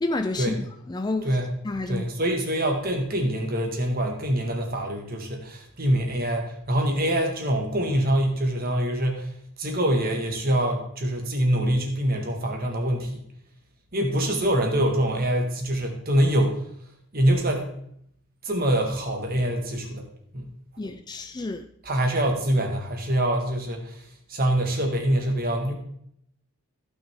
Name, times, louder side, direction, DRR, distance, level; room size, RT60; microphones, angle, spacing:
voice 1, 0.0-1.4 1.6-2.1 20.8-21.7, left 2 dB, 20° left, 0.3 m, -30 dB
voice 2, 1.9-9.3 9.6-13.2 13.9-16.6 17.1-17.7 18.4-20.1 20.3-20.5 21.8-24.0 24.3-25.7, right 1 dB, 40° right, 1.7 m, -24 dB
15.0 x 6.1 x 3.6 m
head